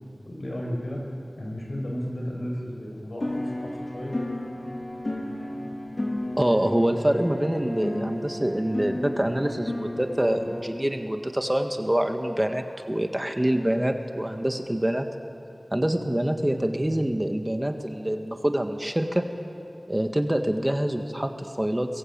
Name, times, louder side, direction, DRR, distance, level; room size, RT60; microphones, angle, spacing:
voice 1, 0.2-1.0 1.4-4.2, equal, 70° left, 0 dB, 6.2 m, -33 dB
sound 1, 3.2-10.6, left 1 dB, 50° left, 3.9 m, -33 dB
voice 2, 6.4-15.1 15.7-19.2 19.9-22.0, right 1 dB, 15° right, 5 dB, 1.7 m, -25 dB
23.0 x 22.0 x 8.8 m, 2.7 s
wide cardioid pair, 55°, 0 cm